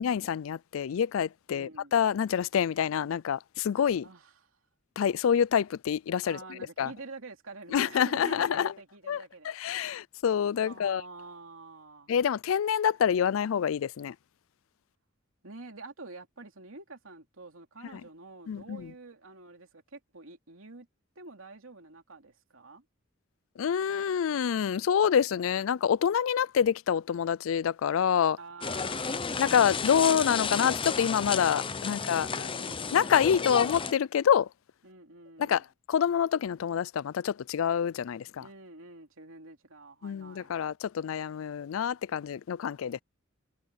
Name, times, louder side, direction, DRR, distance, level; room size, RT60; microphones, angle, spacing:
voice 1, 0.0-4.1 5.0-6.4 6.8-6.9 7.7-8.7 9.1-11.0 12.1-14.1 18.5-18.9 23.6-28.4 29.4-32.3 32.9-34.5 35.4-35.6 35.9-38.4 40.0-43.0, left 8 dB, 75° left, 0.4 m, -27 dB
voice 2, 1.5-1.9 4.0-4.5 6.3-9.5 10.7-12.1 15.4-20.9 21.1-22.8 28.4-29.6 31.8-33.3 34.8-35.7 38.4-40.5, right 3 dB, 75° right, 3.0 m, -48 dB
sound 1, 28.6-33.9, left 5 dB, 25° left, 0.6 m, -32 dB
head